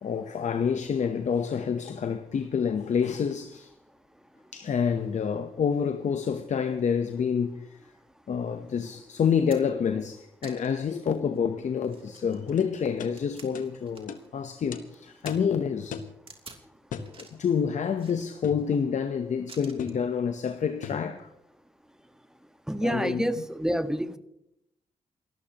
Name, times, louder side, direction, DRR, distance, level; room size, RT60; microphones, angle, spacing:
voice 1, 0.0-3.7 4.5-7.8 8.3-16.0 17.2-21.3 22.8-23.3, left 7 dB, 65° left, 0.9 m, -28 dB
sound 1, 8.7-8.8 9.2-9.9 10.4-10.9 11.3-11.4 11.8-14.3 14.6-15.3 16.3-16.7 17.0-17.5 18.0-18.7 19.5-20.0 21.1-21.2, right 3 dB, 45° right, 2.9 m, -50 dB
sound 2, 12.6-12.7 13.0-13.1 13.5-13.7 14.1-14.2 14.7-14.8 15.3-15.5 15.9-16.2 16.9-17.1 18.4-18.7 19.8-20.0 20.8-21.1, left 7 dB, 85° left, 1.2 m, -38 dB
voice 2, 22.7-24.2, equal, 5° right, 1.4 m, -28 dB
29.0 x 13.0 x 3.0 m
supercardioid pair, 55°, 13 cm